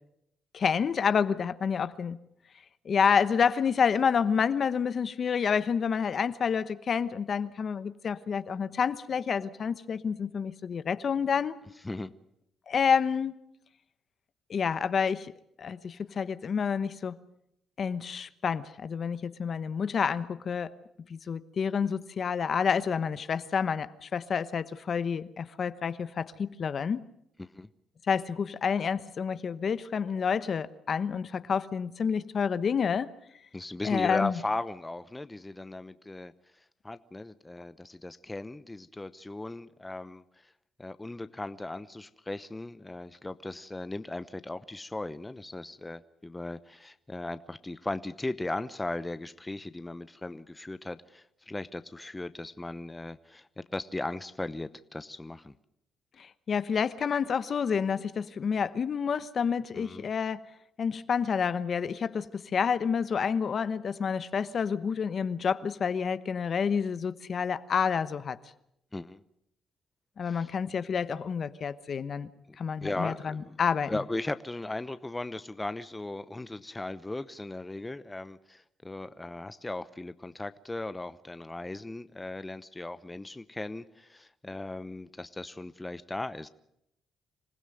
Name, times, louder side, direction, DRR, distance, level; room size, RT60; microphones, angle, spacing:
voice 1, 0.5-2.2 2.8-11.5 12.7-13.3 14.5-15.3 15.6-17.2 17.8-20.7 21.1-27.0 28.1-33.1 33.8-34.4 56.2-60.4 60.8-68.4 70.2-72.3 72.6-74.0, left 6 dB, 50° left, 1.0 m, -29 dB
voice 2, 33.5-36.3 36.8-40.5 40.8-55.6 59.7-60.1 68.9-69.2 70.2-70.5 72.5-73.6 73.9-86.5, left 2 dB, 15° left, 0.8 m, -37 dB
26.0 x 16.0 x 7.8 m
cardioid pair, 90°, 0 cm